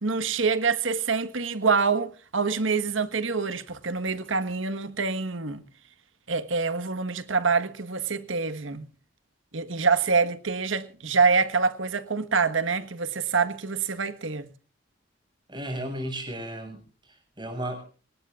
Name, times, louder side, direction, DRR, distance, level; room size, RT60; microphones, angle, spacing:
voice 1, 0.0-5.6 6.3-8.9 9.5-14.5, right 4 dB, 80° right, 1.5 m, -26 dB
voice 2, 15.5-17.8, right 1 dB, 25° right, 6.8 m, -35 dB
26.5 x 19.0 x 2.5 m
head